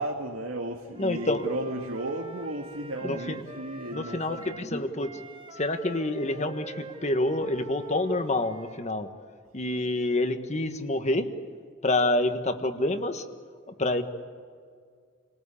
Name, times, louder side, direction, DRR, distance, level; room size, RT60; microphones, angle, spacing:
voice 1, 0.0-4.8, right 1 dB, 90° right, 0 dB, 2.2 m, -35 dB
Wind instrument woodwind instrument, 0.9-4.7 5.0-8.9, right 2 dB, 25° right, 1.5 m, -44 dB
voice 2, 1.0-1.5 3.0-3.4 3.9-5.2 5.5-9.1 9.5-11.3 11.8-13.2 13.7-14.0, left 2 dB, 35° left, 8 dB, 1.4 m, -27 dB
28.5 x 19.0 x 8.5 m, 2.1 s
head